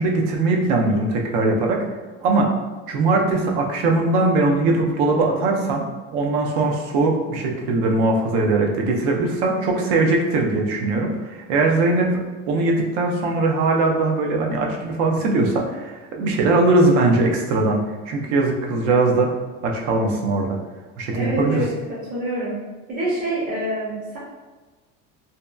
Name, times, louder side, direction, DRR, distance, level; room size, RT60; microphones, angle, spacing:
voice 1, 0.0-1.8 2.2-2.5 2.9-5.8 6.1-12.1 12.5-17.8 18.1-19.3 19.6-20.6 21.0-21.6, right 2 dB, 80° right, 1 dB, 0.6 m, -20 dB
voice 2, 21.1-21.7 22.1-22.5 22.9-24.2, right 1 dB, 25° right, -8 dB, 0.5 m, -26 dB
2.7 x 2.1 x 2.2 m, 1.3 s
cardioid pair, 165°, 32 cm